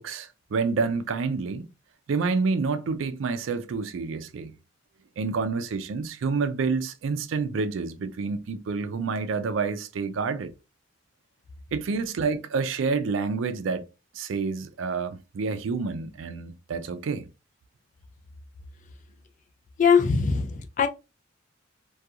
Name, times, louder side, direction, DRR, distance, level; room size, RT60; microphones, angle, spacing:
voice 1, 0.0-1.7 2.1-4.5 5.2-10.5 11.7-13.8 14.1-17.3, right 4 dB, 80° right, 0.4 m, -28 dB
voice 2, 19.8-20.9, left 6 dB, 40° left, 0.3 m, -21 dB
2.4 x 2.2 x 2.7 m
head